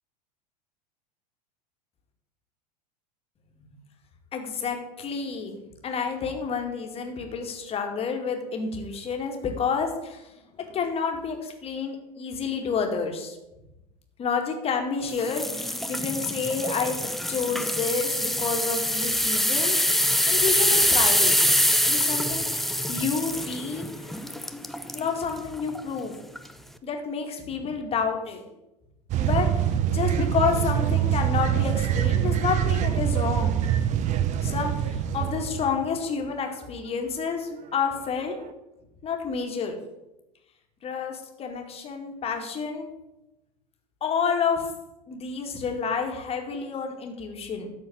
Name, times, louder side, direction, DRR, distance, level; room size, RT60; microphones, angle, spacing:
voice 1, 4.3-5.6 5.8-10.3 10.6-13.4 14.2-17.0 17.3-19.9 20.3-21.4 21.8-24.2 24.9-26.1 26.8-28.4 29.2-29.5 29.9-33.6 34.4-38.4 39.0-39.7 40.8-42.9 44.0-44.6 45.1-47.7, left 5 dB, 30° left, 3 dB, 2.0 m, -29 dB
sound 1, 15.2-25.1 25.6-25.8 26.4-26.5, left 1 dB, ahead, 0.6 m, -25 dB
sound 2, 29.1-35.9 38.5-38.6, right 10 dB, 35° right, 0.8 m, -25 dB
12.5 x 4.5 x 7.1 m, 0.96 s
figure-of-eight pair, 85°, 21 cm